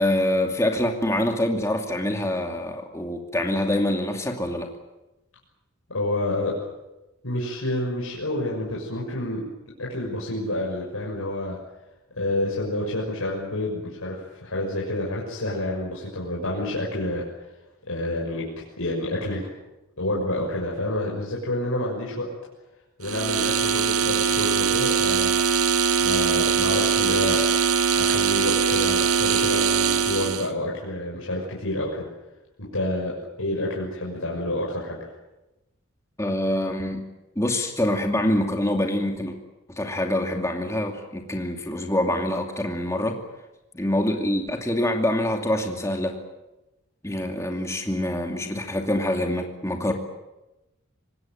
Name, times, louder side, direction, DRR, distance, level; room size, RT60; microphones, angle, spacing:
voice 1, 0.0-4.7 36.2-37.0 37.4-39.3 39.7-43.2 43.7-46.2 47.0-49.9, left 1 dB, 15° left, 3 dB, 2.5 m, -25 dB
voice 2, 5.9-6.5 7.2-9.4 9.8-11.6 12.2-17.2 17.9-18.5 18.8-19.4 20.0-22.3 23.0-25.3 26.0-27.4 27.9-32.1 32.6-35.0, left 1 dB, 75° left, -3 dB, 6.3 m, -28 dB
sound 1, 23.0-30.5, right 7 dB, 90° right, 1.7 m, -22 dB
26.0 x 19.5 x 9.1 m, 0.99 s
head